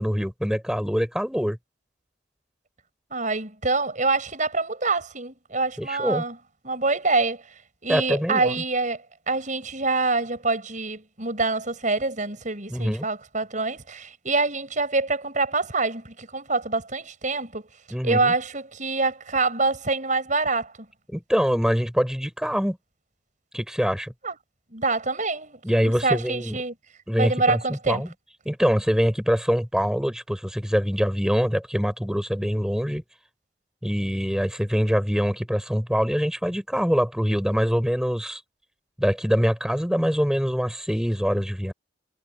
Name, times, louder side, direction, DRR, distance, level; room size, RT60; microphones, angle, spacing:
voice 1, 0.0-1.6 5.8-6.2 7.9-8.5 12.7-13.1 17.9-18.3 21.1-22.8 23.5-24.1 25.6-26.6 27.1-28.1 28.5-33.0 33.8-38.4 39.0-41.7, equal, 5° right, 5.5 m, -24 dB
voice 2, 3.1-6.4 6.6-7.4 7.8-17.6 18.0-20.7 24.2-24.4 24.7-26.7 27.2-28.0, right 3 dB, 45° right, 7.3 m, -26 dB
head